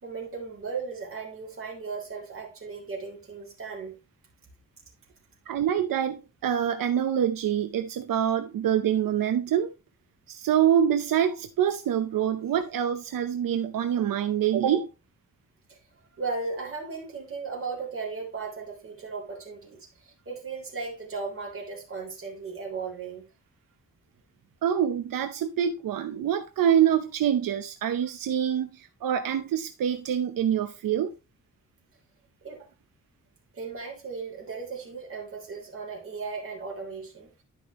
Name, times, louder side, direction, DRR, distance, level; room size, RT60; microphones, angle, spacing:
voice 1, 0.0-4.0 15.7-15.8 16.2-23.3 32.4-32.7 33.5-37.3, right 4 dB, 40° right, 3.3 m, -36 dB
voice 2, 5.5-9.7 10.3-14.9 24.6-31.1, right 9 dB, 90° right, 0.7 m, -25 dB
11.5 x 5.4 x 3.0 m
wide cardioid pair, 140°, 33 cm